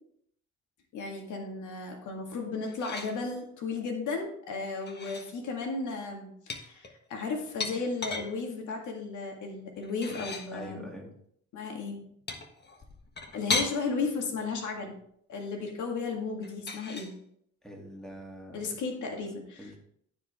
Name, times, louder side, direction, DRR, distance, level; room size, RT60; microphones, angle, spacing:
voice 1, 0.9-10.9 11.5-12.1 13.3-14.9 15.3-17.1 18.5-19.7, left 4 dB, 80° left, 2 dB, 1.9 m, -34 dB
sound 1, 2.7-3.2 4.7-5.3 6.5-8.3 9.8-10.5 12.3-13.8 16.4-17.1, left 3 dB, 35° left, 1.4 m, -35 dB
voice 2, 10.5-11.1 17.6-18.7 19.6-19.8, equal, ahead, 0 dB, 2.4 m, -44 dB
14.0 x 5.0 x 3.6 m, 0.68 s
cardioid pair, 90°, 30 cm